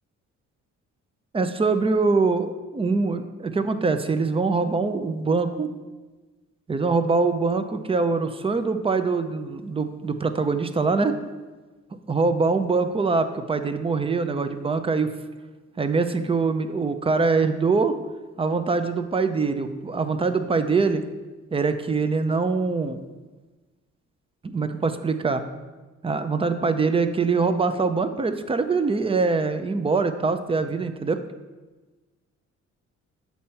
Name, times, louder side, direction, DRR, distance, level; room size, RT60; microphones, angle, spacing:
voice 1, 1.3-5.7 6.7-11.2 12.1-15.1 15.8-17.9 18.4-21.0 21.5-23.0 24.4-25.4 26.0-31.2, right 4 dB, 20° right, 10 dB, 0.6 m, -23 dB
7.2 x 4.3 x 5.7 m, 1.2 s
cardioid pair, 90°, 30 cm